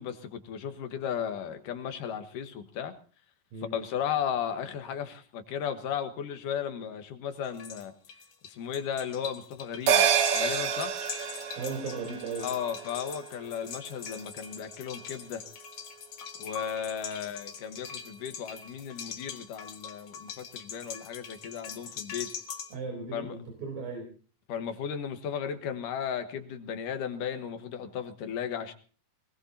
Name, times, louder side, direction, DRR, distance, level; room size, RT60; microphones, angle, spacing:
voice 1, 0.0-2.9 3.7-7.9 8.5-10.1 10.3-10.9 12.4-15.4 16.4-22.3 23.1-23.4 24.5-28.7, left 8 dB, 75° left, 7 dB, 2.8 m, -35 dB
sound 1, 7.4-22.7, left 7 dB, 55° left, 2.0 m, -43 dB
sound 2, 9.9-14.6 14.9-15.0, right 8 dB, 60° right, 1.6 m, -29 dB
voice 2, 11.5-12.5 21.7-21.9 22.7-24.1, right 4 dB, 80° right, 1 dB, 5.5 m, -37 dB
22.5 x 20.5 x 2.8 m, 0.40 s
omnidirectional pair, 3.9 m